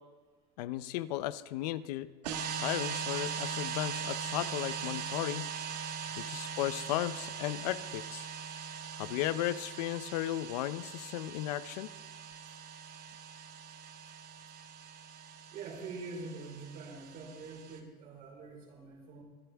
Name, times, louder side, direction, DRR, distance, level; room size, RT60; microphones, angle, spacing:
voice 1, 0.6-2.1 2.5-5.5 6.2-8.3 9.0-11.9, left 14 dB, 80° left, 14 dB, 0.7 m, -35 dB
sound 1, 2.2-17.8, right 7 dB, 80° right, 1.7 m, -41 dB
voice 2, 15.5-19.2, right 3 dB, 45° right, -1 dB, 4.7 m, -45 dB
25.0 x 10.5 x 3.5 m, 1.3 s
supercardioid pair, 145°, 20 cm